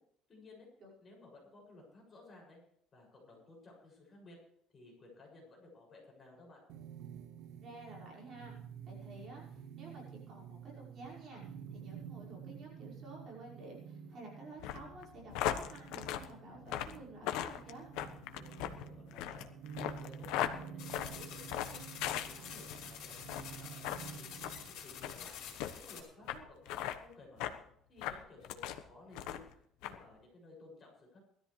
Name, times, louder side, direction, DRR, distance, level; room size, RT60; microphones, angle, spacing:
voice 1, 0.3-0.7 1.0-2.6 2.9-4.4 4.7-6.6 18.3-19.4 19.8-21.8 22.0-23.1 23.4-25.4 25.7-27.6 27.9-31.2, left 2 dB, 20° left, -1 dB, 6.9 m, -56 dB
sound 1, 6.7-24.7, right 7 dB, 75° right, 2.1 m, -50 dB
voice 2, 7.6-8.6 8.9-17.9 26.2-26.5, right 2 dB, 35° right, -4 dB, 5.4 m, -52 dB
sound 2, 14.6-22.8 23.2-23.5 23.8-24.0 24.4-24.6 25.0-25.2 25.6-25.7 26.3-26.4 26.7-27.0 27.4-27.6 28.0-28.8 29.1-29.5 29.8-30.0, left 11 dB, 80° left, 1.1 m, -38 dB
sound 3, 20.8-26.0, left 8 dB, 55° left, 4.6 m, -48 dB
20.0 x 13.5 x 3.3 m, 0.67 s
cardioid pair, 170°, 0 cm